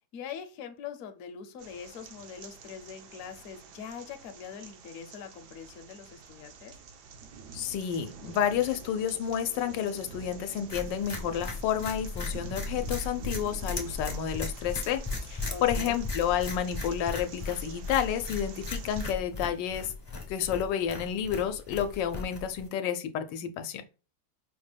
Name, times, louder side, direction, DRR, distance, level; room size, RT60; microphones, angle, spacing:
voice 1, 0.1-6.8 15.5-15.9, left 7 dB, 65° left, 0.9 m, -43 dB
sound 1, 1.6-19.1, right 4 dB, 70° right, 1.2 m, -47 dB
voice 2, 7.5-19.9 20.3-23.8, left 9 dB, 85° left, 1.2 m, -30 dB
sound 2, 10.7-22.7, left 3 dB, 40° left, 0.3 m, -37 dB
5.1 x 2.1 x 3.3 m
omnidirectional pair, 1.9 m